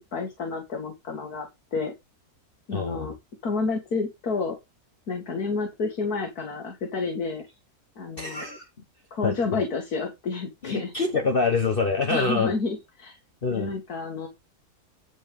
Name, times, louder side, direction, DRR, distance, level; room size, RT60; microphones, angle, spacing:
voice 1, 0.1-1.9 2.7-3.1 3.4-4.6 5.1-7.5 8.0-8.4 9.1-10.9 12.1-13.2 13.5-14.3, left 4 dB, 70° left, 2.5 m, -30 dB
voice 2, 2.7-3.1 8.2-8.7 9.2-9.6 10.6-12.5 13.4-13.7, left 4 dB, 40° left, 1.3 m, -26 dB
11.0 x 4.7 x 5.3 m
omnidirectional pair, 1.6 m